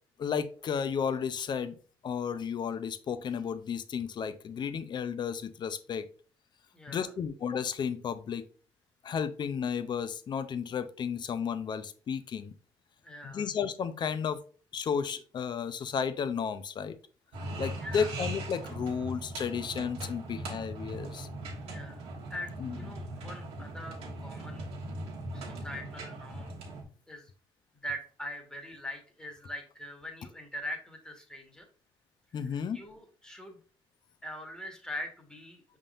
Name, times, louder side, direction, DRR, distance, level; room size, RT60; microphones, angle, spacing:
voice 1, 0.2-1.8 2.0-6.1 6.9-8.4 9.0-12.5 13.2-14.4 14.7-17.0 17.6-21.3 22.6-22.8 32.3-32.8, left 7 dB, 45° left, 13 dB, 0.5 m, -33 dB
voice 2, 6.7-7.1 13.0-13.5 17.8-18.1 21.6-24.7 25.3-26.5 27.1-27.3 27.7-31.7 32.5-33.6 34.2-35.8, left 1 dB, 5° left, 2 dB, 1.4 m, -42 dB
sound 1, 17.3-26.8, right 1 dB, 75° right, 1.3 m, -40 dB
5.4 x 3.6 x 2.5 m, 0.40 s
cardioid pair, 80°, 10 cm